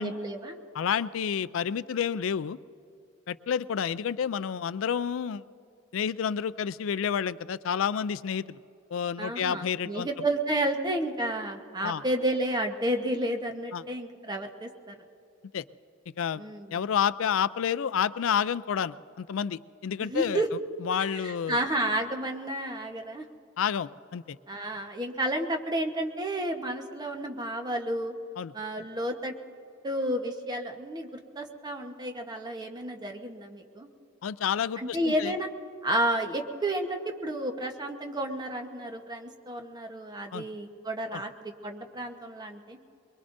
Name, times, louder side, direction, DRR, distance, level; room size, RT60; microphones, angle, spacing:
voice 1, 0.0-0.6 9.2-14.9 16.4-16.8 20.0-20.5 21.1-23.2 24.5-28.1 28.5-29.3 29.8-33.9 34.8-35.5 35.8-42.8, right 1 dB, 20° right, 4 dB, 1.1 m, -31 dB
voice 2, 0.7-2.6 3.3-5.4 5.9-8.6 8.9-10.1 11.8-12.0 13.7-13.8 15.5-15.6 16.2-16.4 16.7-20.4 20.8-21.6 23.6-24.4 28.4-28.5 34.2-35.3 40.3-40.4 41.1-41.2, left 7 dB, 75° left, 16 dB, 0.4 m, -29 dB
23.5 x 22.5 x 2.6 m, 2.7 s
head